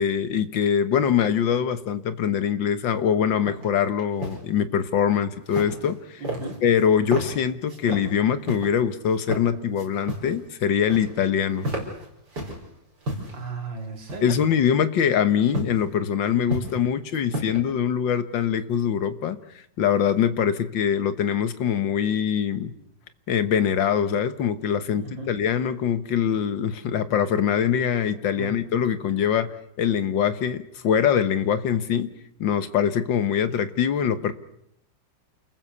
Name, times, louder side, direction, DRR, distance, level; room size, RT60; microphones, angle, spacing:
voice 1, 0.0-6.2 6.6-11.8 14.2-22.7 23.3-32.1 32.4-34.3, left 8 dB, 85° left, 12 dB, 2.0 m, -23 dB
sound 1, 3.5-3.7 4.0-4.4 5.5-5.9 6.2-6.8 7.1-7.3 7.7-8.1 8.5-8.7 9.1-9.4 9.8-10.4 10.6-11.2 11.5-12.6 13.0-13.4 14.1-14.5 15.5-15.8 16.2-16.8 17.1-17.6, equal, 60° right, 6.0 m, -32 dB
voice 2, 6.2-6.6 12.4-12.5 13.3-14.5 25.0-25.3 28.3-28.5, right 3 dB, 85° right, 4 dB, 3.7 m, -35 dB
28.5 x 20.5 x 6.9 m, 0.77 s
omnidirectional pair, 2.0 m